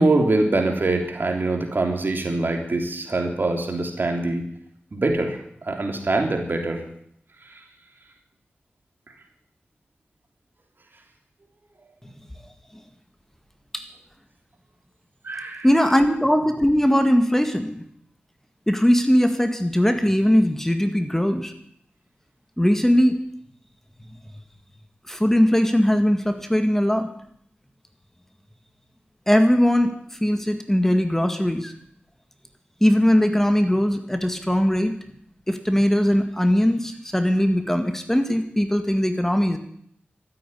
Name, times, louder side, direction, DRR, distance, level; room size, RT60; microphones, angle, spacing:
voice 1, 0.0-4.4 4.9-6.8 7.4-7.6 15.2-15.7, right 2 dB, 55° right, 3 dB, 3.3 m, -24 dB
voice 2, 15.6-17.8 18.7-21.5 22.6-23.2 25.1-27.1 29.3-29.9 30.2-31.7 32.8-35.0 35.5-39.6, equal, 10° left, 7 dB, 1.8 m, -20 dB
13.0 x 9.4 x 10.0 m, 0.68 s
cardioid pair, 45°, 4 cm